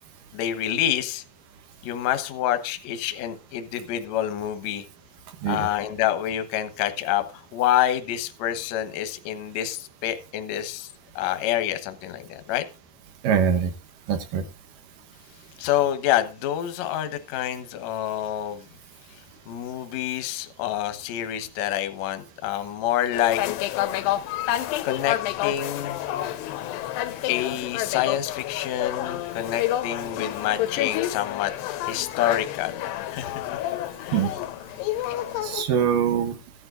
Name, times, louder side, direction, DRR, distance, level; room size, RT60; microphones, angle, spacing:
voice 1, 0.3-1.2 1.8-4.8 5.5-12.7 15.6-18.7 19.5-23.4 24.8-26.0 27.3-31.5 31.8-32.8 33.1-33.5 34.0-34.2 35.1-35.2, left 12 dB, 65° left, 9 dB, 1.8 m, -27 dB
voice 2, 13.2-13.7 14.1-14.4 34.1-34.3 35.4-36.4, right 8 dB, 65° right, 7 dB, 2.4 m, -23 dB
sound 1, 23.1-35.6, left 13 dB, 90° left, 2.9 m, -29 dB
16.0 x 11.0 x 2.5 m, 0.31 s
omnidirectional pair, 4.7 m